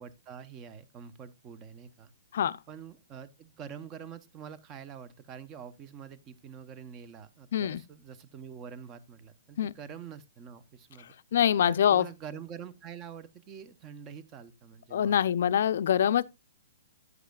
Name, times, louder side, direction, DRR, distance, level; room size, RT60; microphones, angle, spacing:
voice 1, 0.0-2.1 2.7-11.1 11.6-15.3, right 7 dB, 25° right, 0.9 m, -46 dB
voice 2, 11.3-12.1 14.9-16.2, left 9 dB, 65° left, 0.5 m, -24 dB
11.0 x 9.4 x 2.3 m
hypercardioid pair, 145°, 0 cm